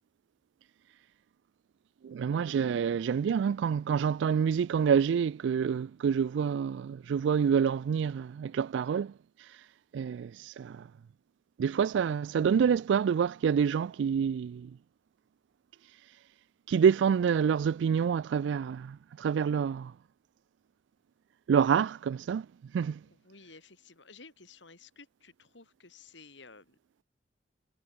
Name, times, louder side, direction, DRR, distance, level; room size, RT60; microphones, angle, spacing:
voice 1, 2.0-9.1 9.9-10.8 11.6-14.7 16.7-19.9 21.5-22.5 22.7-23.0, right 7 dB, 80° right, 0.3 m, -27 dB
voice 2, 23.0-26.8, left 4 dB, 85° left, 4.0 m, -54 dB
head